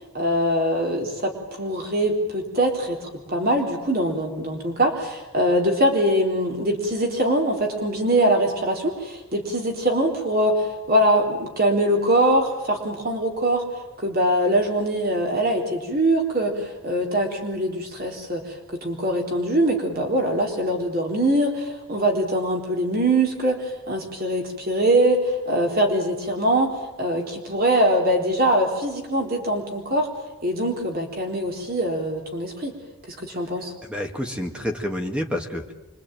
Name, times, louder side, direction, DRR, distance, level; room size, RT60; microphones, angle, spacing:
voice 1, 0.1-13.6 14.0-26.7 27.0-30.1 30.4-32.7 33.1-33.7, right 1 dB, 40° right, 2 dB, 3.8 m, -23 dB
voice 2, 33.8-35.7, left 1 dB, 5° right, 3 dB, 2.0 m, -29 dB
26.5 x 24.0 x 9.1 m, 1.1 s
head